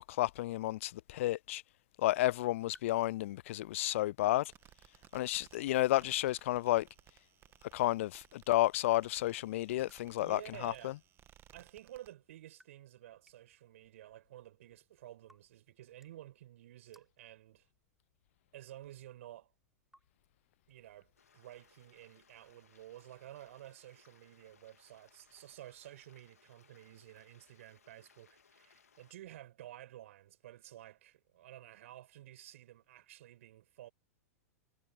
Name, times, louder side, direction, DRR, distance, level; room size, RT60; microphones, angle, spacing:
voice 1, 0.0-1.6 2.0-4.5 5.1-6.9 7.7-10.9, left 16 dB, 60° left, 0.4 m, -31 dB
sound 1, 2.3-21.2, right 1 dB, 5° right, 6.2 m, -74 dB
sound 2, 4.5-12.1, right 11 dB, 30° right, 1.6 m, -63 dB
voice 2, 10.2-11.0 11.5-17.7 18.5-19.5 20.7-33.9, right 13 dB, 60° right, 5.2 m, -52 dB
Stream, 21.2-29.1, left 6 dB, 80° left, 3.1 m, -67 dB
figure-of-eight pair, 100°, 8 cm